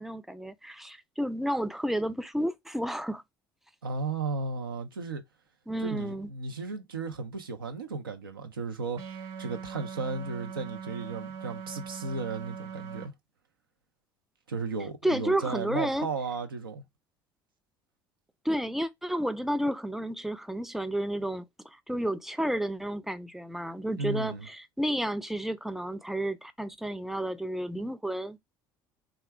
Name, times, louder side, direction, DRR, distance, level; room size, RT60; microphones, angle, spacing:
voice 1, 0.0-3.2 5.7-6.3 15.0-16.1 18.4-28.4, right 1 dB, 5° right, 0.5 m, -31 dB
voice 2, 3.8-5.2 5.8-13.1 14.5-16.8 24.0-24.5, right 4 dB, 80° right, 0.6 m, -35 dB
sound 1, 9.0-13.1, right 7 dB, 55° right, 1.3 m, -41 dB
3.6 x 2.3 x 4.4 m
figure-of-eight pair, 60°, 11 cm